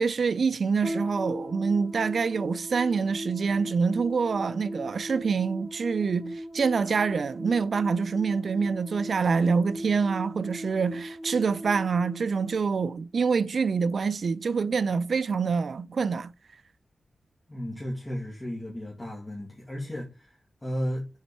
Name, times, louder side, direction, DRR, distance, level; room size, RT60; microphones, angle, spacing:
voice 1, 0.0-16.3, right 5 dB, 65° right, 0.3 m, -26 dB
sound 1, 0.8-13.3, equal, 20° right, 2.9 m, -38 dB
voice 2, 17.5-21.1, equal, 20° left, 2.1 m, -34 dB
7.2 x 4.3 x 4.2 m
wide cardioid pair, 100°, 0 cm